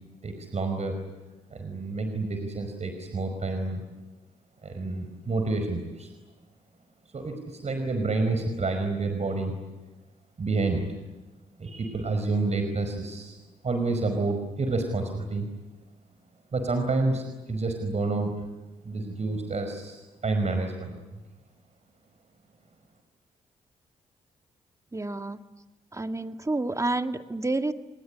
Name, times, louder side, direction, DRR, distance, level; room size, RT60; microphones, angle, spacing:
voice 1, 0.2-0.9 1.5-3.8 4.6-6.1 7.1-9.5 10.4-10.8 11.6-13.4 13.6-15.5 16.5-18.3 18.8-20.9, right 3 dB, 45° right, 6 dB, 5.1 m, -29 dB
voice 2, 24.9-25.4 25.9-27.7, right 2 dB, 20° right, 7 dB, 2.0 m, -29 dB
30.0 x 20.0 x 9.8 m, 1.1 s
supercardioid pair, 50°, 15 cm